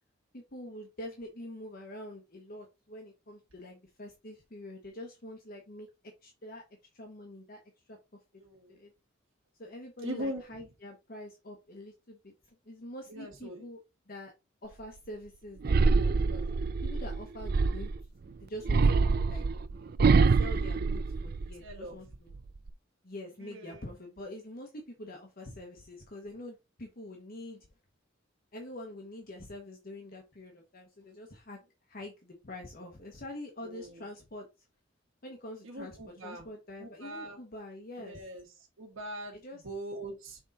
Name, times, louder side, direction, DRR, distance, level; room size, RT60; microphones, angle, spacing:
voice 1, 0.3-5.9 6.2-6.6 6.9-7.6 7.9-8.0 8.7-8.9 9.6-13.8 14.1-14.3 14.6-16.5 16.8-17.9 18.3-19.4 20.4-22.4 23.0-27.7 28.5-31.6 31.9-34.5 35.2-38.3 39.3-39.6, left 1 dB, 45° left, 2 dB, 1.1 m, -45 dB
voice 2, 8.4-8.7 10.0-10.4 13.1-13.6 21.6-22.0 23.4-23.8 33.7-33.9 35.6-36.5 36.8-37.4 38.0-38.4 38.8-39.4 39.6-40.4, right 1 dB, 90° right, -1 dB, 1.3 m, -40 dB
sound 1, 15.6-18.0 18.6-21.7 22.1-22.7, right 4 dB, 50° right, 0.4 m, -25 dB
6.3 x 3.8 x 4.0 m, 0.26 s
head